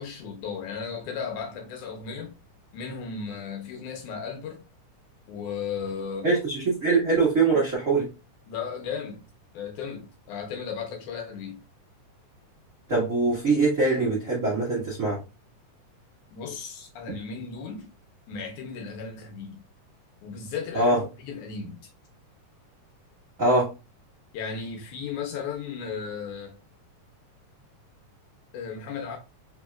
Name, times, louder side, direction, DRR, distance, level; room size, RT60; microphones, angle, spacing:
voice 1, 0.0-2.4 2.7-4.6 5.3-6.3 8.5-9.2 9.5-11.6 16.3-17.9 18.3-19.6 20.2-21.8 24.3-26.6 28.5-29.2, left 6 dB, 75° left, 2.2 m, -35 dB
voice 2, 6.2-8.1 12.9-15.2 20.7-21.0 23.4-23.7, right 3 dB, 85° right, 0.7 m, -23 dB
4.6 x 3.5 x 2.2 m
omnidirectional pair, 3.7 m